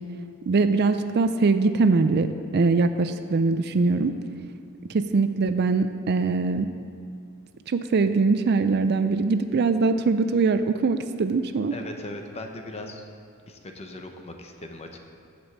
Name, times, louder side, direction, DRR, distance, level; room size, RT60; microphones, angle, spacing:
voice 1, 0.5-2.3 2.5-4.1 4.9-6.7 7.7-11.7, right 4 dB, 50° right, 10 dB, 0.4 m, -22 dB
voice 2, 11.7-13.1 13.5-15.0, left 1 dB, 30° left, 4 dB, 0.8 m, -38 dB
9.6 x 5.3 x 7.3 m, 2.3 s
head